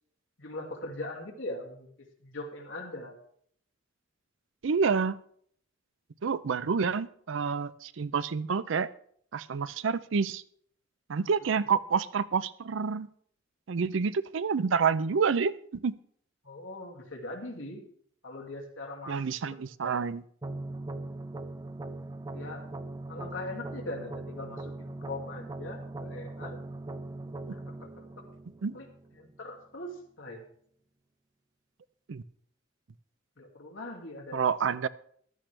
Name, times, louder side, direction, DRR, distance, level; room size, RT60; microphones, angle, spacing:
voice 1, 0.4-1.9 2.2-3.2 16.4-17.8 18.2-19.2 19.5-19.9 22.3-22.7 23.1-26.6 27.5-28.2 28.7-28.9 29.1-30.4 33.4-34.4, left 2 dB, 75° left, 1 dB, 2.4 m, -41 dB
voice 2, 4.6-5.2 6.2-8.9 9.3-10.4 11.1-13.1 13.7-15.9 19.1-20.2 28.6-28.8 32.1-32.2 34.3-34.9, right 5 dB, 75° right, 16 dB, 0.5 m, -28 dB
sound 1, 20.4-29.4, right 2 dB, 20° right, 0.4 m, -40 dB
14.5 x 12.0 x 3.3 m, 0.63 s
head